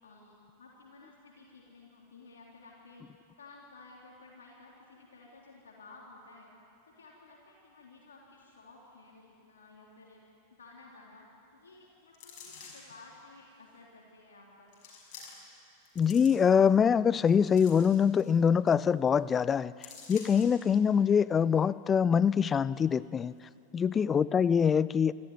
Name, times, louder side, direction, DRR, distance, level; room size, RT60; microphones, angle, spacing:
voice 1, 0.0-3.1 3.4-6.5 6.8-10.2 10.6-11.3 11.5-14.7 23.7-24.0, left 3 dB, 65° left, -2 dB, 3.7 m, -54 dB
sound 1, 12.1-13.0 13.7-13.8 14.7-15.6 15.8-16.7 17.2-18.3 18.7-18.8 19.1-19.3 19.8-20.6 21.1-21.2, left 5 dB, 45° left, 6.2 m, -49 dB
voice 2, 16.0-19.7 20.1-23.3 23.7-25.1, left 7 dB, 20° left, 20 dB, 0.5 m, -24 dB
27.5 x 14.0 x 9.6 m, 2.6 s
figure-of-eight pair, 90°, 0 cm